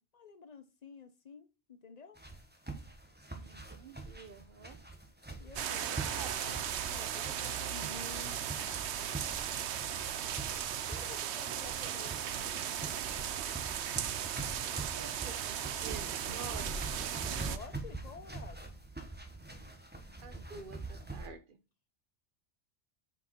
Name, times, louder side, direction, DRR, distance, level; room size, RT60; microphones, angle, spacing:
voice 1, 0.0-2.2 5.4-6.6 6.9-9.9 10.2-10.6 10.9-13.7 17.2-18.7, left 5 dB, 40° left, 1.0 m, -52 dB
sound 1, 2.2-21.3, right 2 dB, 10° right, 1.3 m, -45 dB
voice 2, 3.4-4.8 6.1-6.4 14.9-17.0 20.2-21.6, right 5 dB, 50° right, 1.2 m, -48 dB
sound 2, 5.6-17.6, right 9 dB, 80° right, 1.0 m, -37 dB
6.7 x 5.5 x 5.9 m
omnidirectional pair, 1.1 m